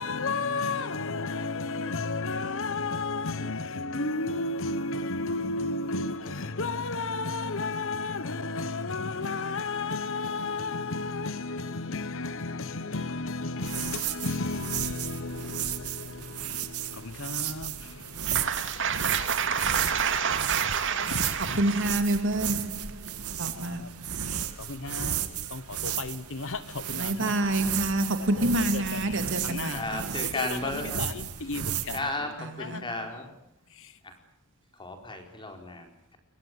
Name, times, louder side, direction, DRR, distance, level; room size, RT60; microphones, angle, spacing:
voice 1, 0.0-18.4 21.1-21.2 21.4-21.6 23.5-23.9 24.6-27.5 28.4-29.9 30.2-32.3 32.6-32.9 33.7-34.0, left 3 dB, 60° left, 1.3 m, -33 dB
sound 1, 13.6-32.0, right 9 dB, 85° right, 2.3 m, -34 dB
voice 2, 18.2-24.2 26.9-30.1 32.4-32.8, right 3 dB, 55° right, 2.8 m, -28 dB
voice 3, 29.7-31.1 31.9-33.2 34.0-34.1 34.8-36.2, left 2 dB, 20° left, 4.6 m, -34 dB
29.0 x 23.5 x 8.1 m
head